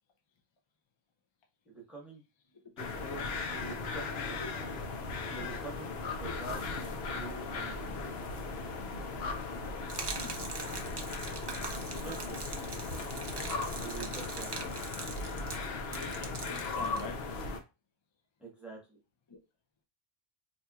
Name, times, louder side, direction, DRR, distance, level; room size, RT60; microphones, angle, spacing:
voice 1, 1.6-2.2 2.6-4.6 5.3-7.7 12.0-12.7 13.8-14.5 18.4-19.0, right 4 dB, ahead, 1.1 m, -46 dB
sound 1, 2.8-17.6, left 3 dB, 80° left, 0.9 m, -37 dB
Gurgling / Liquid, 9.9-17.5, right 4 dB, 45° right, 0.3 m, -43 dB
voice 2, 15.9-17.2 19.3-19.4, left 4 dB, 35° left, 0.5 m, -45 dB
4.3 x 2.6 x 2.3 m
omnidirectional pair, 1.0 m